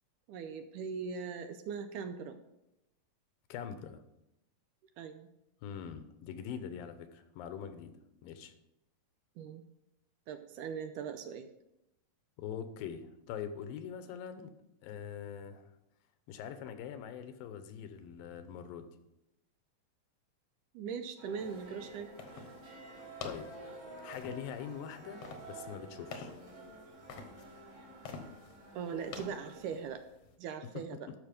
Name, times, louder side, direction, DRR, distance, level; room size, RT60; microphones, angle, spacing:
voice 1, 0.3-2.4 5.0-5.3 9.4-9.6 10.3-11.5 20.7-22.1 28.8-30.0 30.4-31.1, right 6 dB, 80° right, 9 dB, 2.0 m, -40 dB
voice 2, 3.5-4.0 5.6-8.0 8.2-8.5 12.4-14.5 14.8-15.7 16.3-19.0 23.2-23.5 24.0-26.3 30.7-31.1, left 8 dB, 85° left, 10 dB, 2.6 m, -43 dB
sound 1, 21.2-29.8, right 2 dB, 60° right, 4.8 m, -51 dB
sound 2, 21.4-30.3, left 5 dB, 65° left, 1.7 m, -50 dB
12.5 x 6.2 x 5.2 m, 0.89 s
omnidirectional pair, 4.0 m